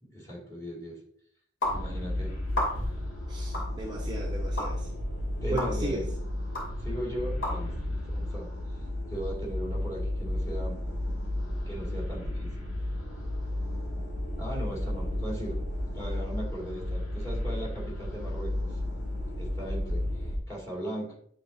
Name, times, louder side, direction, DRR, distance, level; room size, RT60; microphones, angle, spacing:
voice 1, 0.0-1.0 1.7-2.4 5.3-6.0 6.8-10.8 11.7-12.7 14.4-15.6 15.9-18.8 19.4-21.2, right 1 dB, 15° left, -4 dB, 2.0 m, -38 dB
sound 1, 1.6-20.4, left 1 dB, 80° left, 1.6 m, -33 dB
sound 2, 1.6-1.8 2.5-3.0 3.5-3.7 4.6-4.7 5.6-5.7 6.5-6.7 7.4-7.5, left 1 dB, 60° left, 2.8 m, -30 dB
voice 2, 3.3-4.9 5.5-6.0, right 1 dB, 20° right, -1 dB, 0.6 m, -36 dB
9.9 x 4.0 x 2.6 m, 0.64 s
head